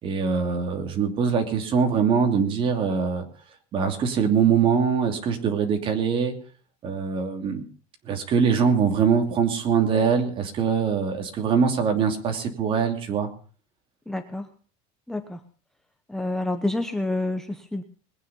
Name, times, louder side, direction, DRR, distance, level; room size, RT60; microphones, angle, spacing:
voice 1, 0.0-3.2 3.7-6.3 6.8-7.6 8.1-13.3, right 6 dB, 35° right, 5 dB, 2.9 m, -23 dB
voice 2, 14.1-14.5 15.1-15.4 16.1-17.8, left 2 dB, 5° left, 6 dB, 0.9 m, -28 dB
21.0 x 9.7 x 5.5 m, 0.42 s
cardioid pair, 155°, 16 cm